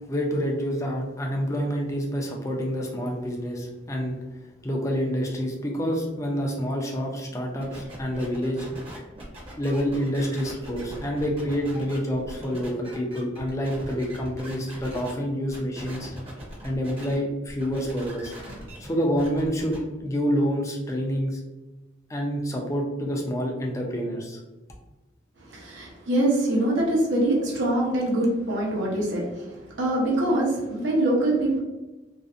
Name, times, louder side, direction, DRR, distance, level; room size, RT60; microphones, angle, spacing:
voice 1, 0.1-4.2 4.6-8.7 9.6-16.1 16.6-18.3 18.8-21.4 22.1-24.4, equal, 15° left, 0 dB, 0.4 m, -27 dB
sound 1, 7.6-15.1 15.5-17.1 17.5-19.8, equal, 30° right, 0.7 m, -41 dB
voice 2, 25.4-31.6, right 1 dB, 80° right, -3 dB, 0.7 m, -24 dB
2.5 x 2.0 x 2.4 m, 1.1 s
head